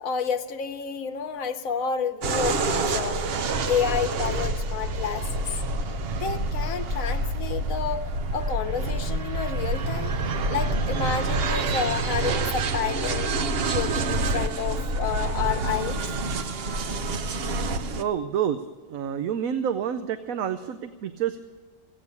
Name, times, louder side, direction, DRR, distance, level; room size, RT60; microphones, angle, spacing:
voice 1, 0.0-3.4 3.7-5.5 6.2-10.1 10.5-13.3 13.7-16.0, left 7 dB, 85° left, 7 dB, 1.1 m, -30 dB
sound 1, 2.2-18.0, right 2 dB, 55° right, 0.8 m, -27 dB
voice 2, 18.0-18.6 18.8-21.4, right 9 dB, 80° right, 10 dB, 1.1 m, -28 dB
16.5 x 8.6 x 9.6 m, 1.4 s
omnidirectional pair, 1.4 m